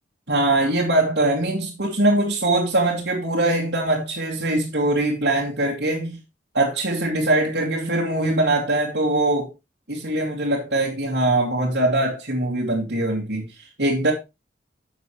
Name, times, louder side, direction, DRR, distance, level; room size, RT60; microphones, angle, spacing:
voice 1, 0.3-6.2 6.5-9.5 9.9-13.5 13.8-14.1, right 2 dB, 75° right, 2.5 m, -22 dB
10.5 x 7.3 x 3.2 m
head